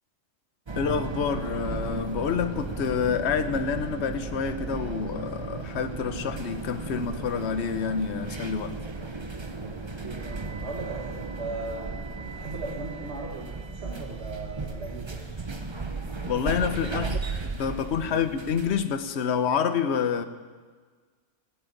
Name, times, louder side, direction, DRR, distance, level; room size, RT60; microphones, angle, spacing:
voice 1, 0.7-8.8 16.3-17.2 17.4-20.2, left 7 dB, 60° left, 9 dB, 1.1 m, -28 dB
sound 1, 0.7-18.8, right 3 dB, 25° right, 0.8 m, -35 dB
voice 2, 9.6-15.3 16.8-17.1 18.1-18.3, right 3 dB, 55° right, -3 dB, 2.0 m, -38 dB
17.0 x 8.0 x 9.1 m, 1.5 s
omnidirectional pair, 1.4 m